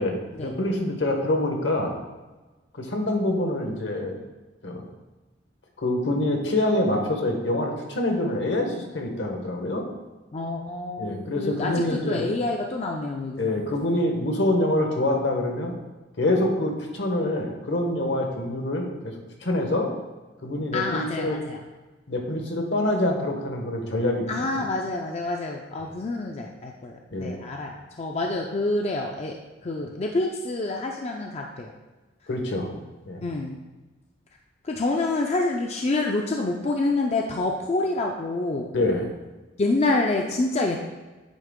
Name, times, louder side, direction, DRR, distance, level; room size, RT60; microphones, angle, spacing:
voice 1, 0.0-2.0 2.7-4.2 4.6-4.9 5.8-9.9 11.0-12.2 13.4-15.7 16.2-19.1 19.4-19.9 20.4-21.4 22.1-24.6 25.8-25.9 27.1-27.4 32.3-32.7 33.1-33.2 38.7-39.1, left 1 dB, 70° left, 2 dB, 1.1 m, -26 dB
voice 2, 10.3-13.6 20.7-21.6 24.3-29.4 29.6-31.7 33.2-33.6 34.6-38.7 39.6-40.8, left 2 dB, 35° left, 1 dB, 0.4 m, -27 dB
9.1 x 3.4 x 3.6 m, 1.2 s
head